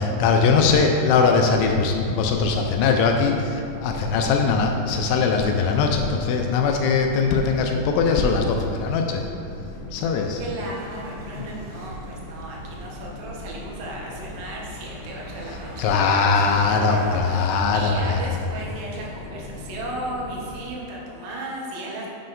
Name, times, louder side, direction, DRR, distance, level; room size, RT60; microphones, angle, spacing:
voice 1, 0.0-9.3 9.9-10.4 11.4-11.5 15.8-18.2, left 4 dB, 85° left, 3 dB, 2.8 m, -21 dB
sound 1, 1.4-20.6, left 2 dB, 65° left, 2.9 m, -39 dB
voice 2, 10.3-22.1, right 2 dB, 80° right, -3 dB, 3.6 m, -35 dB
Motor vehicle (road), 10.6-17.2, right 1 dB, 65° right, 2.2 m, -40 dB
7.7 x 7.3 x 2.6 m, 2.6 s
omnidirectional pair, 5.6 m